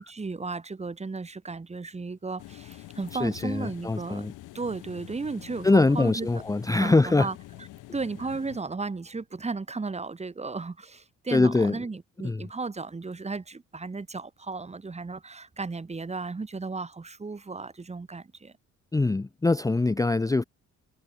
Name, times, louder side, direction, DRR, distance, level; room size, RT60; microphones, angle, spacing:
voice 1, 0.0-4.3 4.5-6.3 6.8-7.3 7.9-18.5, right 4 dB, 20° right, 1.7 m, -35 dB
sound 1, 2.4-8.6, left 16 dB, 90° left, 1.7 m, -46 dB
voice 2, 3.2-4.3 5.6-7.3 11.3-11.8 12.2-12.4 18.9-20.4, left 3 dB, 10° left, 0.6 m, -23 dB
cardioid pair, 90°, 30 cm